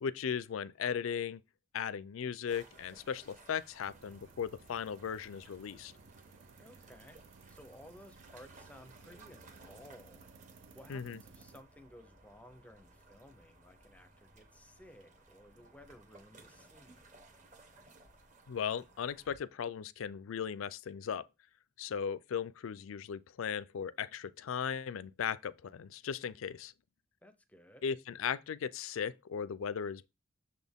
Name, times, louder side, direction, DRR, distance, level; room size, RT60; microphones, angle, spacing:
voice 1, 0.0-1.4 1.7-5.9 10.9-11.2 18.5-21.3 21.8-26.7 27.8-30.1, left 7 dB, 80° left, 0.4 m, -37 dB
sound 1, 2.5-19.4, right 2 dB, 35° right, 1.1 m, -60 dB
sound 2, 3.8-11.6, right 4 dB, 65° right, 0.5 m, -59 dB
voice 2, 6.6-7.2 7.5-10.3 10.7-17.1 27.2-27.9, left 1 dB, 5° left, 0.5 m, -56 dB
6.4 x 4.2 x 3.5 m
head